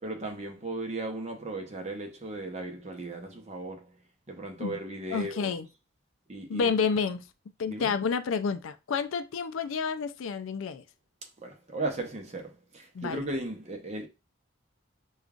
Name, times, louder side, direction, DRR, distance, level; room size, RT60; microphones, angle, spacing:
voice 1, 0.0-3.9 4.3-5.5 6.3-6.7 7.7-7.9 11.4-14.1, right 2 dB, 35° right, 0.7 m, -36 dB
voice 2, 5.1-5.7 6.5-7.3 7.6-10.8 12.9-13.3, left 5 dB, 80° left, 0.4 m, -29 dB
5.0 x 2.4 x 2.4 m
head